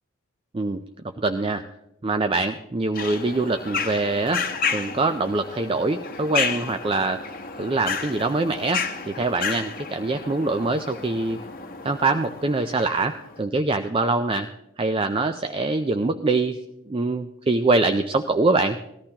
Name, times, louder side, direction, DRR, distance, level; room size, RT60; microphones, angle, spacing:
voice 1, 1.2-1.6 2.0-4.4 4.7-7.2 7.6-11.4 11.8-14.5 14.8-16.6 16.9-18.8, right 3 dB, 25° right, 7 dB, 0.4 m, -24 dB
sound 1, 2.9-13.4, left 6 dB, 40° left, 0.9 m, -31 dB
19.0 x 13.5 x 2.9 m, 0.84 s
head